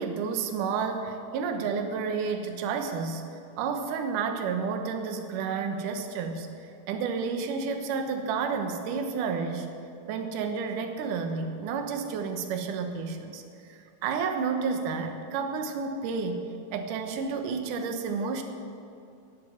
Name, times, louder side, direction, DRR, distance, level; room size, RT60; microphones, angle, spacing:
voice 1, 0.0-3.2 3.6-9.7 10.1-13.4 13.7-16.5 16.7-18.4, right 5 dB, 65° right, 5 dB, 2.4 m, -31 dB
16.0 x 7.4 x 9.4 m, 2.5 s
omnidirectional pair, 4.5 m